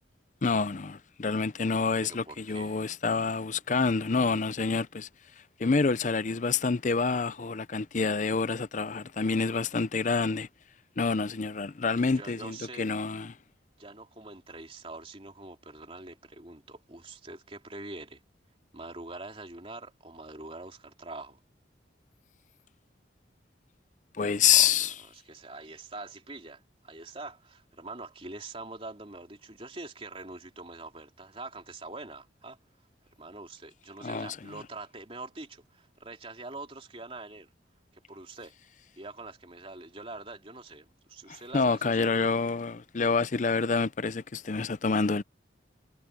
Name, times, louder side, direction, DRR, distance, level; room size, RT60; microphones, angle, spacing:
voice 1, 0.4-5.1 5.6-10.5 11.0-13.3 24.2-24.9 34.0-34.5 41.3-45.2, left 5 dB, 40° left, 0.5 m, -27 dB
voice 2, 2.0-2.8 12.0-12.9 13.8-18.2 18.7-21.4 24.4-32.6 33.2-37.5 37.9-38.5 39.0-42.3, right 2 dB, 30° right, 3.3 m, -44 dB
head